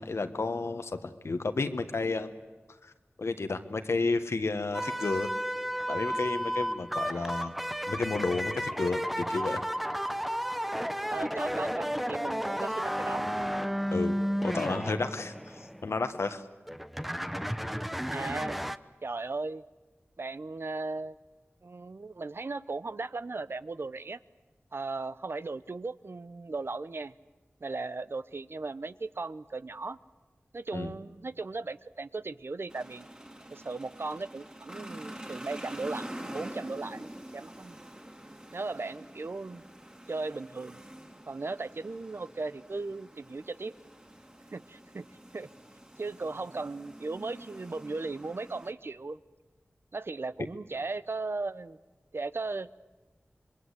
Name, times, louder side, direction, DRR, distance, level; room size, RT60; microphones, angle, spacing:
voice 1, 0.0-2.3 2.8-2.9 3.2-5.3 5.9-7.5 7.9-9.6 13.9-14.2 14.4-16.4 30.7-30.9, left 3 dB, 80° left, 9 dB, 1.4 m, -31 dB
sound 1, 4.7-16.1 16.7-18.8, equal, 5° right, 0.8 m, -33 dB
voice 2, 11.1-13.3 18.1-18.6 19.0-19.6 20.2-21.2 21.6-24.2 24.7-27.1 27.6-30.0 30.5-33.1 33.5-37.8 38.5-39.6 40.1-40.8 41.3-43.7 44.5-45.1 45.3-45.5 46.0-49.2 49.9-51.8 52.1-52.7, right 3 dB, 60° right, 15 dB, 0.7 m, -37 dB
sound 2, 32.7-48.7, right 1 dB, 20° right, 2.9 m, -46 dB
26.5 x 21.5 x 8.2 m, 1.3 s
wide cardioid pair, 45°, 5 cm